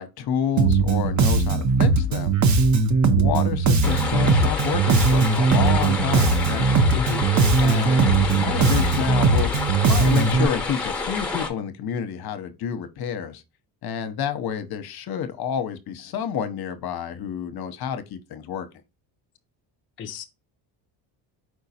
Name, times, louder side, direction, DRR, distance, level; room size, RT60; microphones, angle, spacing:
voice 1, 0.0-2.3 3.1-6.9 7.6-9.5 9.8-13.4 13.8-18.7, left 8 dB, 50° left, 0.8 m, -29 dB
Bass guitar, 0.6-10.5, right 4 dB, 35° right, 0.6 m, -19 dB
sound 1, 3.8-11.5, left 4 dB, 5° left, 0.9 m, -29 dB
voice 2, 6.9-7.3 20.0-20.2, left 6 dB, 30° left, 0.4 m, -30 dB
4.8 x 3.7 x 2.7 m
cardioid pair, 90°, 48 cm